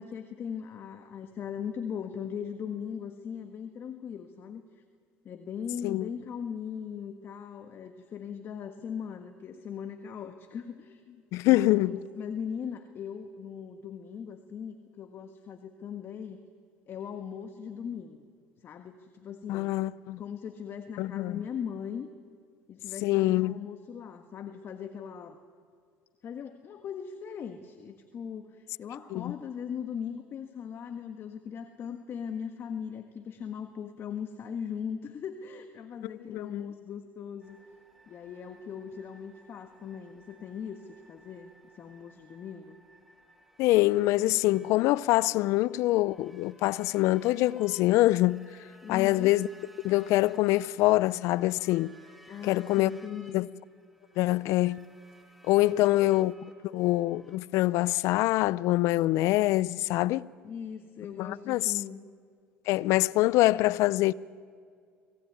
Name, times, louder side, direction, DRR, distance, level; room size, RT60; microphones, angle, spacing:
voice 1, 0.0-4.6 5.2-11.2 11.5-16.4 16.9-18.2 18.6-19.7 20.2-22.1 22.7-25.4 26.2-37.6 38.1-42.8 48.8-49.3 52.3-53.5 60.4-62.0, left 7 dB, 45° left, 1.5 m, -39 dB
voice 2, 11.3-11.9 19.5-20.2 21.0-21.3 23.0-23.6 29.1-29.3 36.2-36.6 43.6-48.4 48.9-49.5 49.8-51.9 52.4-52.9 53.3-53.5 54.2-54.8 55.5-56.4 56.7-60.3 61.2-61.7 62.7-64.1, left 17 dB, 65° left, 0.5 m, -25 dB
sound 1, 37.4-57.4, right 1 dB, ahead, 3.0 m, -58 dB
25.5 x 18.0 x 9.4 m
hypercardioid pair, 75°, 5 cm